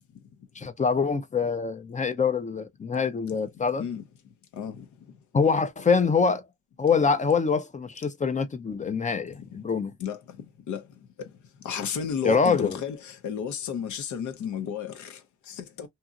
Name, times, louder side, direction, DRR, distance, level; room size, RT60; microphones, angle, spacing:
voice 1, 0.6-3.8 5.3-6.4 6.8-9.9 12.2-12.8, left 5 dB, 25° left, 0.5 m, -25 dB
voice 2, 3.8-4.1 4.5-4.9 10.0-10.9 11.2-11.3 11.6-15.9, left 8 dB, 75° left, 0.8 m, -33 dB
2.9 x 2.7 x 2.4 m
cardioid pair, 90°, 30 cm